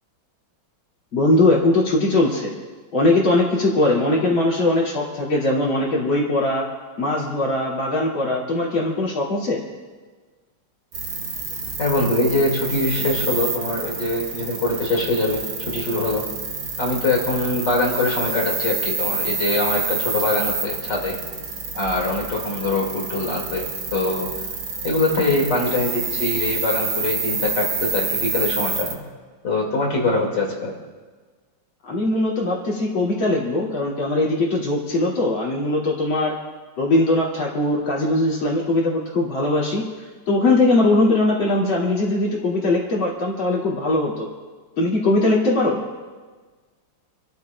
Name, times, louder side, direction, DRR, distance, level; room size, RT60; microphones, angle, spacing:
voice 1, 1.1-2.5 2.9-6.6 7.0-9.6 31.8-36.4 36.8-39.8 40.3-44.3 44.8-45.8, left 2 dB, 80° left, -5 dB, 3.4 m, -20 dB
sound 1, 10.9-29.0, right 4 dB, 80° right, 2.4 m, -28 dB
voice 2, 11.8-16.3 16.8-21.2 21.7-24.3 24.8-29.0 29.4-30.8, left 2 dB, 60° left, -2 dB, 3.0 m, -23 dB
28.5 x 14.0 x 2.3 m, 1.4 s
omnidirectional pair, 2.1 m